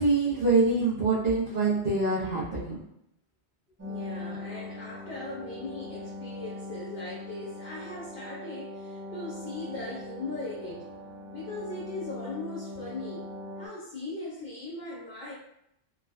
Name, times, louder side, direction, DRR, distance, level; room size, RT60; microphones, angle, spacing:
voice 1, 0.0-2.8, right 3 dB, 55° right, -10 dB, 0.9 m, -25 dB
voice 2, 3.8-13.3 13.6-15.3, left 2 dB, 55° left, -7 dB, 0.8 m, -39 dB
sound 1, 3.8-13.7, left 2 dB, 20° right, 0.5 m, -41 dB
3.4 x 2.2 x 2.3 m, 0.78 s
omnidirectional pair, 1.1 m